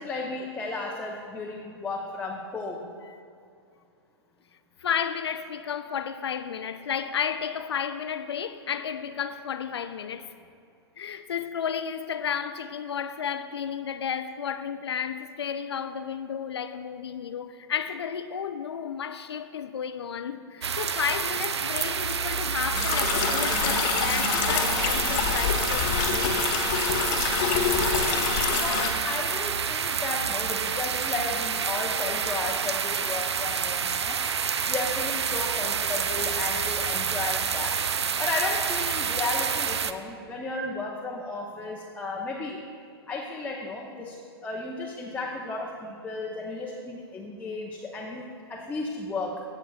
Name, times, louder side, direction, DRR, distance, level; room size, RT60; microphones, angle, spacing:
voice 1, 0.0-2.9 28.6-34.2 34.7-37.8 38.2-42.6 43.1-49.4, left 3 dB, 10° left, 0.8 m, -34 dB
voice 2, 4.8-10.3 11.0-26.4 28.1-28.4, left 7 dB, 70° left, 0.5 m, -32 dB
sound 1, 20.6-39.9, right 6 dB, 80° right, 0.4 m, -28 dB
sound 2, 22.7-28.9, left 6 dB, 45° left, 1.2 m, -26 dB
16.0 x 7.8 x 2.4 m
figure-of-eight pair, 105°, 14 cm